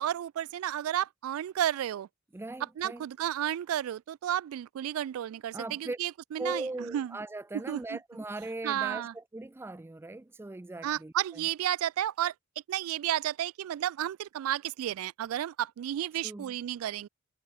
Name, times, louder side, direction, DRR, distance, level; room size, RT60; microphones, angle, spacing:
voice 1, 0.0-2.1 2.8-6.6 6.9-7.1 7.7-8.0 8.6-9.1 10.8-12.3 12.7-17.1, right 11 dB, 90° right, 0.3 m, -32 dB
voice 2, 2.3-3.0 5.5-6.0 6.4-11.5 16.2-16.6, right 2 dB, 10° right, 0.3 m, -39 dB
head